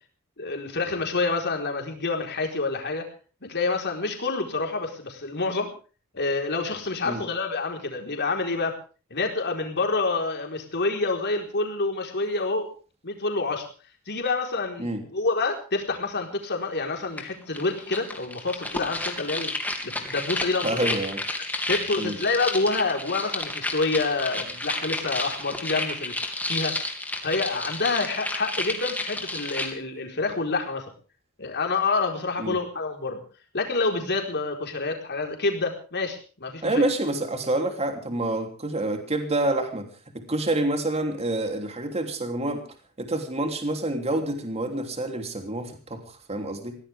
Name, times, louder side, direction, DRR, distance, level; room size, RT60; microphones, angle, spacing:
voice 1, 0.4-3.1 3.5-5.7 6.1-8.8 9.1-12.7 13.0-13.7 14.1-19.5 19.8-20.9 21.7-26.8 27.2-30.9 31.4-33.2 33.5-36.8, left 3 dB, 50° left, 3 dB, 4.5 m, -27 dB
sound 1, 17.2-17.3 17.5-29.7, left 2 dB, 5° left, 2.7 m, -31 dB
voice 2, 20.6-21.2 22.0-22.2 32.4-32.6 36.6-39.9 40.1-42.6 43.0-46.8, right 1 dB, 30° right, 5 dB, 3.2 m, -27 dB
23.0 x 16.5 x 3.6 m, 0.37 s
head